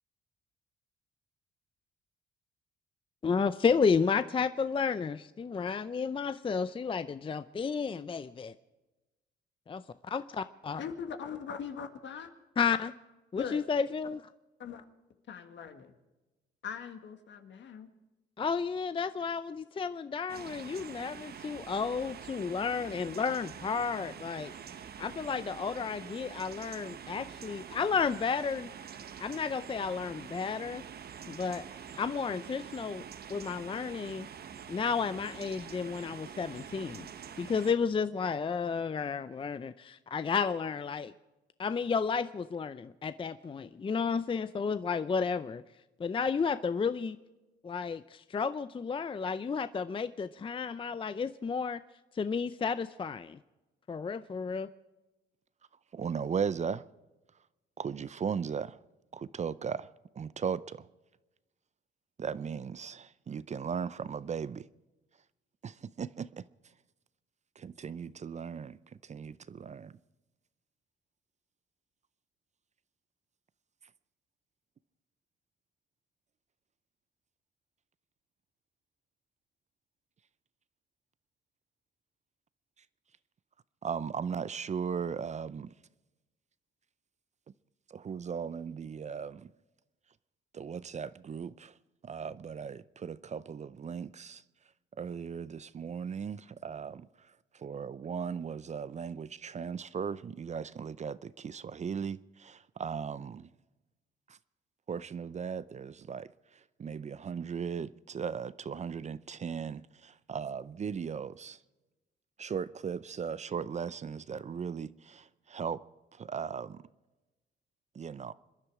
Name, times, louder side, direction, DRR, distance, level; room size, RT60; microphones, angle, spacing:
voice 1, 3.2-8.5 9.7-10.8 12.6-12.9 13.3-14.3 18.4-24.5 25.0-28.7 29.2-30.8 31.3-31.6 32.0-33.0 33.3-34.3 34.7-37.1 37.4-41.1 41.6-45.6 46.0-47.2 47.6-51.8 52.1-53.4 53.9-54.7, left 5 dB, 25° left, 0.5 m, -32 dB
voice 2, 10.8-12.3 13.3-13.6 14.6-14.8 15.3-15.9 16.6-17.9, left 7 dB, 65° left, 1.8 m, -41 dB
sound 1, 20.3-37.7, right 8 dB, 50° right, 0.9 m, -46 dB
voice 3, 55.9-56.8 57.8-58.8 59.1-59.9 60.2-60.9 62.2-64.7 65.6-66.5 67.6-70.0 83.8-85.7 87.9-89.5 90.5-91.7 92.0-94.4 95.0-103.5 104.3-104.4 104.9-111.6 112.4-115.8 116.1-116.8 117.9-118.3, right 6 dB, 35° right, 0.5 m, -37 dB
26.0 x 11.0 x 4.8 m
cardioid pair, 90°, 20 cm